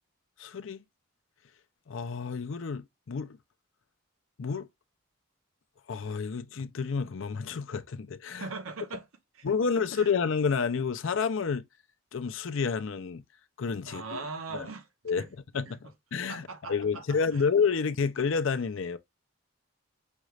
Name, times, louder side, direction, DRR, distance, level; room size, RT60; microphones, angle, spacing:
voice 1, 0.4-0.8 1.9-3.4 4.4-4.7 5.9-8.5 9.4-11.7 12.1-13.2 13.6-14.2 14.5-14.7 15.0-15.2 15.5-19.0, left 5 dB, 65° left, 0.5 m, -29 dB
voice 2, 8.4-9.1 9.3-9.5 9.8-10.1 13.8-14.9 15.2-15.3 15.6-15.8 16.3-17.5, right 3 dB, 80° right, 0.9 m, -40 dB
5.2 x 2.4 x 3.1 m
head